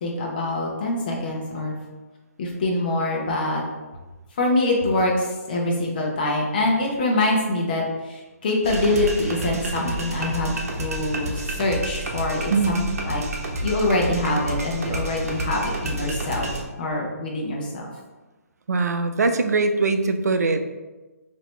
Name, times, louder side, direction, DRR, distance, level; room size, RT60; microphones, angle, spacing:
voice 1, 0.0-1.7 2.4-3.6 4.4-13.2 13.6-16.5 16.8-17.9, left 2 dB, 35° left, -1 dB, 0.9 m, -24 dB
sound 1, 8.6-16.6, right 1 dB, 65° right, 1.0 m, -30 dB
voice 2, 18.7-20.6, right 3 dB, 80° right, 8 dB, 0.5 m, -21 dB
4.8 x 2.9 x 3.2 m, 1.2 s
hypercardioid pair, 165°, 9 cm